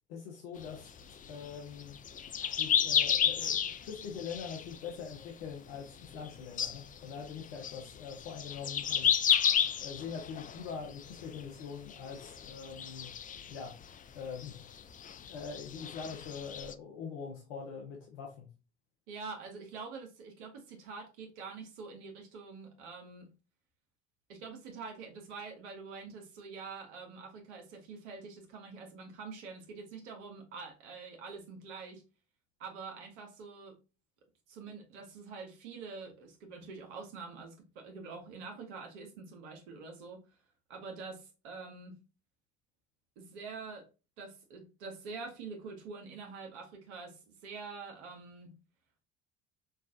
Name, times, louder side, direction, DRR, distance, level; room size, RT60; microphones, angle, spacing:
voice 1, 0.1-2.0 2.6-9.2 9.8-13.1 13.5-13.7 14.1-14.6 15.3-18.5, left 6 dB, 80° left, 1.0 m, -43 dB
sound 1, 0.6-5.5 5.7-6.3 6.6-11.6 11.9-14.0 14.3-16.7, left 8 dB, 25° left, 0.3 m, -32 dB
voice 2, 19.1-23.3 24.3-32.0 32.6-33.8 34.5-40.2 40.7-42.0 43.2-43.8 44.2-48.5, right 4 dB, 80° right, 1.1 m, -46 dB
5.1 x 2.5 x 2.4 m
hypercardioid pair, 65°, 35 cm